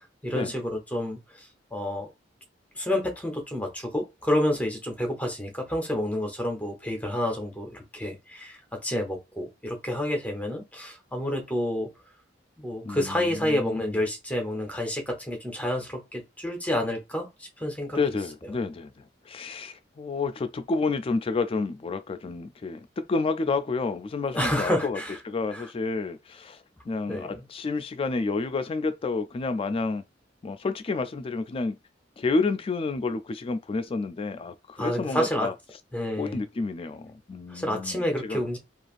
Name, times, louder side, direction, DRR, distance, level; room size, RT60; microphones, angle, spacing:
voice 1, 0.0-2.1 2.7-11.9 12.6-18.0 24.3-25.1 25.5-25.6 27.1-27.5 34.8-35.5 35.9-36.4 37.5-38.6, left 1 dB, 10° left, 0.8 m, -29 dB
voice 2, 12.8-14.0 17.9-25.0 25.2-30.0 30.4-31.8 32.2-35.5 36.2-38.4, left 3 dB, 30° left, 0.3 m, -30 dB
3.2 x 2.4 x 2.4 m
head